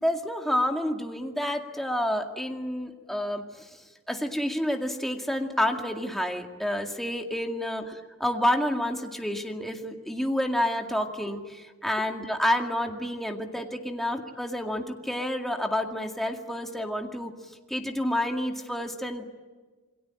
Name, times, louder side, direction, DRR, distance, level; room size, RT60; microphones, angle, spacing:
voice 1, 0.0-7.8 8.2-17.3 17.7-19.2, left 1 dB, ahead, 3 dB, 2.2 m, -29 dB
28.0 x 22.0 x 9.0 m, 1.3 s
head